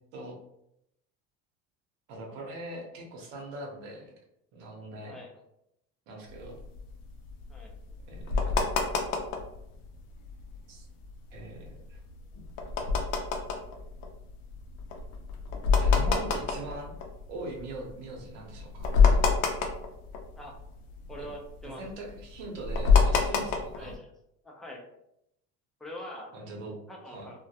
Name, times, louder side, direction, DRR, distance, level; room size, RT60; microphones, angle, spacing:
voice 1, 2.1-4.1 4.5-5.2 6.1-6.6 8.1-8.6 10.7-10.9 11.3-12.0 15.7-16.9 17.3-18.9 21.2-21.3 21.6-23.9 26.3-26.7 27.1-27.3, right 2 dB, 80° right, 0 dB, 0.9 m, -41 dB
voice 2, 5.1-5.4 7.5-7.7 20.4-20.6 21.1-21.8 23.7-24.1 24.4-24.8 25.8-26.3 26.9-27.5, equal, ahead, -2 dB, 0.4 m, -43 dB
sound 1, 6.3-9.6 10.0-10.1 10.2-10.6 11.0-17.7 18.2-18.3 18.5-20.6 20.9-23.9, left 5 dB, 75° left, 0.5 m, -26 dB
2.2 x 2.1 x 2.7 m, 0.79 s
cardioid pair, 120°, 31 cm